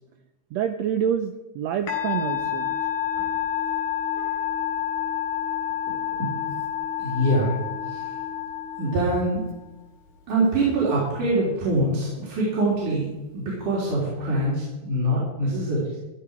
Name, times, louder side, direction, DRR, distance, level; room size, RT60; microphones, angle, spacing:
voice 1, 0.5-2.7, right 8 dB, 90° right, 8 dB, 1.5 m, -27 dB
Musical instrument, 1.9-9.5, left 9 dB, 70° left, 4.0 m, -29 dB
voice 2, 6.2-6.6 7.0-8.0 8.8-9.4 10.3-13.1 13.3-16.0, right 1 dB, 65° right, -7 dB, 4.7 m, -24 dB
14.0 x 12.5 x 4.9 m, 1.0 s
omnidirectional pair, 3.9 m